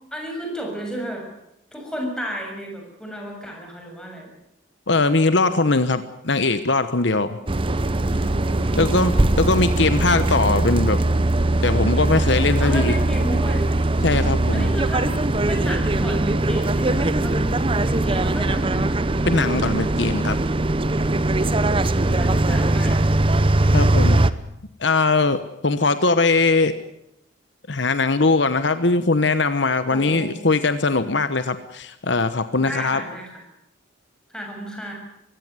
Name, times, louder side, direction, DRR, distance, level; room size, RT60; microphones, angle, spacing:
voice 1, 0.1-1.3 1.7-4.3 7.4-7.8 8.2-9.0 9.7-10.1 12.6-13.7 14.5-18.9 21.3-23.0 29.9-30.3 32.6-33.4 34.3-34.9, equal, 5° left, 0 dB, 7.0 m, -33 dB
voice 2, 4.9-7.4 8.7-11.0 11.6-13.0 14.0-14.7 19.2-20.4 23.7-24.3 24.8-26.7 27.7-33.0, left 3 dB, 65° left, 11 dB, 1.1 m, -20 dB
sound 1, 7.5-24.3, right 2 dB, 25° right, 0.8 m, -20 dB
23.0 x 16.5 x 9.5 m, 0.81 s
head